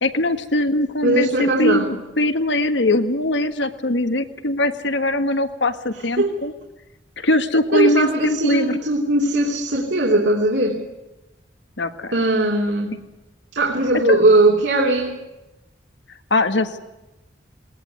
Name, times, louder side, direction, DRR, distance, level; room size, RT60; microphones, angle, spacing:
voice 1, 0.0-6.5 7.2-8.8 11.8-12.1 14.1-14.2 16.3-16.8, left 1 dB, 75° left, 9 dB, 1.7 m, -21 dB
voice 2, 1.0-1.9 5.9-6.4 7.7-10.8 12.1-13.0 13.5-15.1, right 2 dB, 70° right, -1 dB, 3.3 m, -19 dB
20.0 x 20.0 x 9.5 m, 1.0 s
head